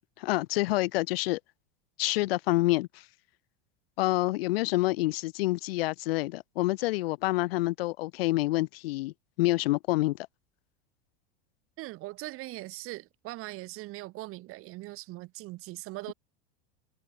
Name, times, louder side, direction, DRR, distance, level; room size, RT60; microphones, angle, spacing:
voice 1, 0.2-1.4 2.0-3.0 4.0-10.2, left 19 dB, 75° left, 1.4 m, -27 dB
voice 2, 11.8-16.1, right 19 dB, 45° right, 5.5 m, -40 dB
supercardioid pair, 135°, 30 cm